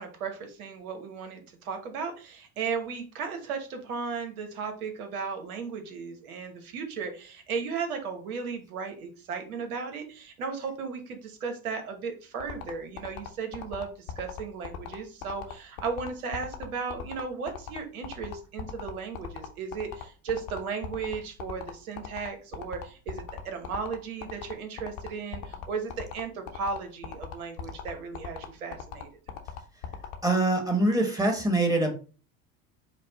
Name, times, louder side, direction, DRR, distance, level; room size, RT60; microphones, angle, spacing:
voice 1, 0.0-29.1, right 5 dB, 90° right, 5 dB, 1.0 m, -35 dB
sound 1, 12.4-30.2, left 8 dB, 65° left, 0.9 m, -38 dB
voice 2, 30.2-32.0, right 2 dB, 10° right, 3 dB, 1.0 m, -24 dB
5.0 x 2.0 x 3.9 m, 0.36 s
hypercardioid pair, 80°, 42 cm